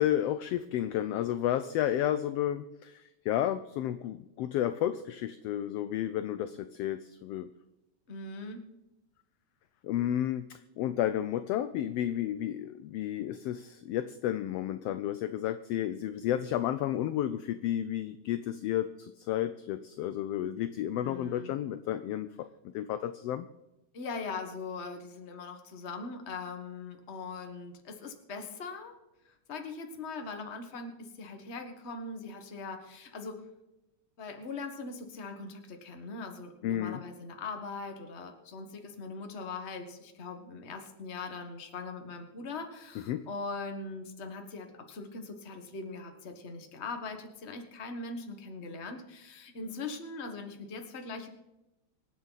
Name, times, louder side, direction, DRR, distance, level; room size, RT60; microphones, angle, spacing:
voice 1, 0.0-7.5 9.8-22.5 22.7-23.5 36.6-37.0 43.1-43.3, left 11 dB, 80° left, 12 dB, 1.4 m, -32 dB
voice 2, 8.1-8.6 21.0-21.5 23.9-29.0 29.2-33.4 34.2-51.3, left 4 dB, 30° left, 5 dB, 1.3 m, -41 dB
25.5 x 8.8 x 4.1 m, 0.96 s
omnidirectional pair, 3.3 m